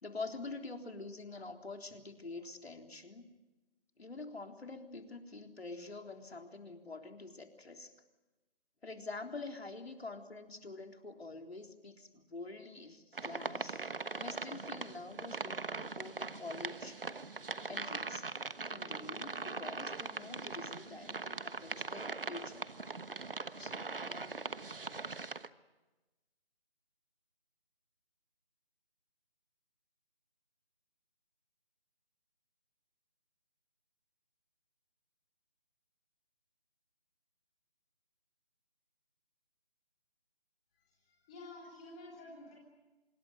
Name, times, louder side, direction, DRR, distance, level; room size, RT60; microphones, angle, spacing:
voice 1, 0.0-3.3 4.0-7.9 8.8-17.0 17.7-18.3 18.7-22.7 23.6-24.3, left 3 dB, 80° left, 4 dB, 3.8 m, -46 dB
sound 1, 13.1-25.5, right 4 dB, 60° right, 1.3 m, -41 dB
voice 2, 41.0-42.5, left 2 dB, 5° left, -6 dB, 3.3 m, -50 dB
26.0 x 22.0 x 9.3 m, 1.1 s
figure-of-eight pair, 180°, 31 cm